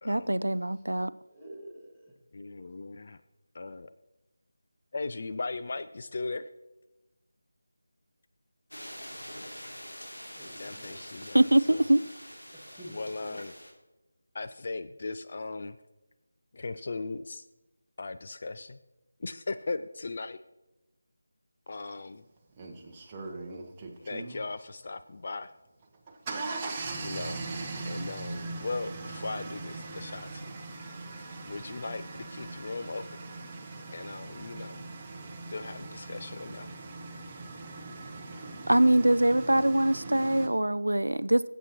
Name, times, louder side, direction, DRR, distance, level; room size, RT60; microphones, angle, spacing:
voice 1, 0.0-1.1 11.3-12.0 38.7-41.4, right 1 dB, 75° right, 0.3 m, -23 dB
voice 2, 1.3-2.1 2.8-3.0 10.3-11.1 12.5-13.4, right 1 dB, ahead, 1.8 m, -49 dB
voice 3, 2.3-3.2 3.5-3.9 4.9-6.5 10.6-11.4 11.7-11.8 12.9-13.5 14.3-15.7 16.5-17.4 18.0-18.8 19.2-20.4 21.7-22.2 24.1-25.5 27.0-27.4 27.9-30.4 31.5-33.2 33.9-34.8 35.5-36.7, left 3 dB, 40° left, 0.3 m, -38 dB
sound 1, 8.7-13.7, equal, 75° left, 2.8 m, -45 dB
sound 2, 21.9-22.0 22.6-24.4 25.8-40.5, right 3 dB, 20° right, 0.9 m, -40 dB
16.5 x 8.0 x 3.0 m
figure-of-eight pair, 160°, 0 cm